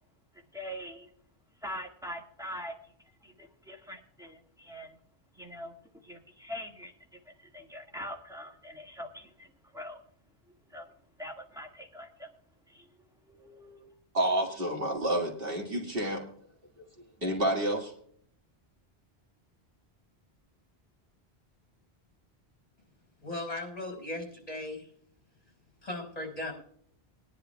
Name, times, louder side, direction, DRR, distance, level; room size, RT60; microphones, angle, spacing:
voice 1, 0.3-1.1 1.6-2.9 3.2-5.0 5.4-5.7 6.0-10.0 10.7-10.9 11.2-12.3 12.7-12.9 13.3-14.0, equal, 5° right, 0 dB, 1.7 m, -43 dB
voice 2, 14.1-16.2 17.2-17.9, right 1 dB, 60° right, -1 dB, 2.1 m, -29 dB
voice 3, 23.2-24.9 25.8-26.5, left 2 dB, 35° left, 1 dB, 4.8 m, -37 dB
22.5 x 10.5 x 2.3 m, 0.64 s
omnidirectional pair, 1.1 m